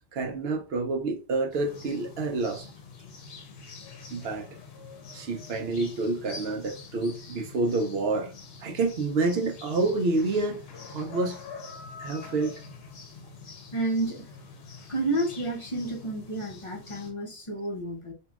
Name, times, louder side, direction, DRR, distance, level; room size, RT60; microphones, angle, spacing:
voice 1, 0.1-2.7 4.1-4.5 5.1-8.3 8.6-11.4 12.0-12.6, right 3 dB, 70° right, 0.9 m, -28 dB
sound 1, 1.5-17.1, left 4 dB, 65° left, 0.9 m, -45 dB
voice 2, 13.7-14.3 14.9-18.1, right 2 dB, 35° left, 0.6 m, -30 dB
3.0 x 2.6 x 2.3 m
omnidirectional pair, 1.1 m